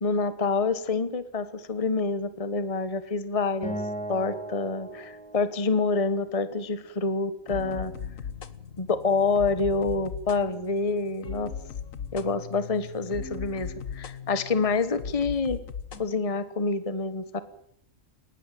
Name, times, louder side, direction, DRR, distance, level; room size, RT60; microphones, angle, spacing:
voice 1, 0.0-3.8 4.1-7.9 8.8-11.5 12.1-15.6 16.0-17.4, left 4 dB, 25° left, 12 dB, 1.3 m, -27 dB
Acoustic guitar, 3.6-6.9, right 1 dB, 5° left, 3.0 m, -38 dB
sound 1, 7.5-16.0, left 7 dB, 70° left, 1.7 m, -38 dB
20.0 x 17.5 x 9.1 m, 0.71 s
omnidirectional pair, 1.5 m